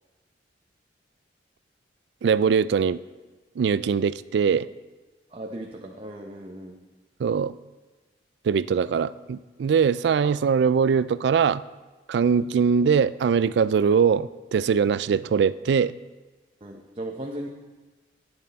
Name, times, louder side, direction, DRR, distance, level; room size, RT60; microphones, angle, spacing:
voice 1, 2.2-3.0 3.6-4.7 7.2-7.6 8.4-11.6 12.1-15.9, right 6 dB, 70° right, 17 dB, 0.3 m, -22 dB
voice 2, 5.3-6.8 10.2-10.3 12.2-12.3 16.6-17.5, right 1 dB, 30° right, 1 dB, 0.7 m, -37 dB
11.0 x 9.7 x 4.1 m, 1.3 s
head